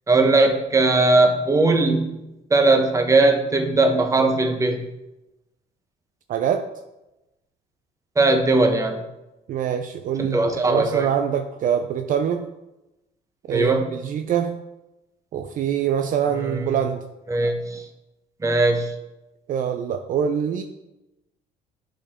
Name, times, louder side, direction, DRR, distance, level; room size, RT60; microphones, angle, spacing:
voice 1, 0.1-2.2 2.5-4.9 8.2-9.0 10.2-11.1 13.5-13.9 16.4-16.7 17.3-17.8 18.4-18.9, right 2 dB, 20° right, 5 dB, 1.1 m, -19 dB
voice 2, 6.3-6.7 9.5-12.5 13.5-14.6 15.3-17.1 19.5-20.6, right 8 dB, 50° right, 7 dB, 0.5 m, -24 dB
9.9 x 5.0 x 3.6 m, 0.97 s
cardioid pair, 110°, 17 cm